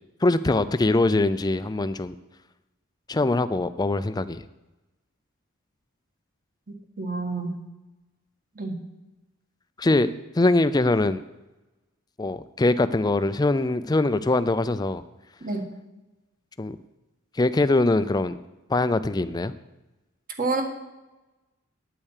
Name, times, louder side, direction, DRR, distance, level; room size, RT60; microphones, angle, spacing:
voice 1, 0.2-2.1 3.1-4.4 9.8-10.1 10.4-11.2 12.2-15.0 16.6-16.8 17.4-18.4 18.7-19.5, left 2 dB, 20° left, 13 dB, 0.4 m, -22 dB
voice 2, 6.7-7.6 8.5-8.8 15.4-15.6 20.4-20.6, right 3 dB, 40° right, 3 dB, 1.6 m, -29 dB
9.3 x 8.9 x 6.5 m, 1.1 s
head